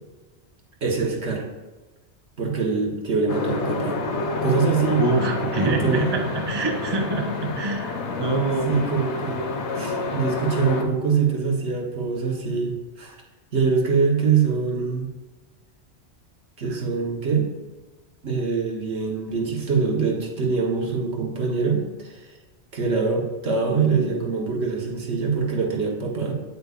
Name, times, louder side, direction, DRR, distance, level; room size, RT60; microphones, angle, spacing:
voice 1, 0.8-1.5 2.4-5.0 5.6-6.1 8.6-13.2 13.5-15.1 16.6-17.5 18.2-22.3 22.7-26.3, right 5 dB, 80° right, 0 dB, 1.5 m, -24 dB
sound 1, 3.3-10.8, left 3 dB, 90° left, 1.1 m, -28 dB
voice 2, 5.0-7.9 8.2-8.8 16.6-16.8, right 2 dB, 25° right, 2 dB, 0.8 m, -25 dB
8.6 x 8.3 x 2.5 m, 1.2 s
omnidirectional pair, 1.1 m